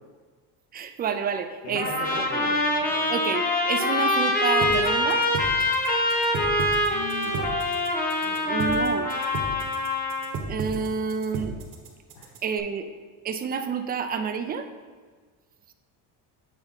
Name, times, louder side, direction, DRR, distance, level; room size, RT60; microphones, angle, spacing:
voice 1, 0.7-1.9 2.2-2.3 3.1-5.3 8.5-9.1 10.5-11.5 12.4-12.9 13.2-14.7, right 6 dB, 25° right, 8 dB, 0.3 m, -29 dB
voice 2, 1.6-3.1 6.9-7.6 8.2-8.6 12.1-12.3, left 3 dB, 80° left, -3 dB, 1.2 m, -38 dB
Trumpet, 1.8-10.4, left 1 dB, 20° left, 0.9 m, -25 dB
sound 1, 4.6-12.6, right 3 dB, 45° right, 1.1 m, -34 dB
8.0 x 4.1 x 4.0 m, 1.5 s
cardioid pair, 125°, 43 cm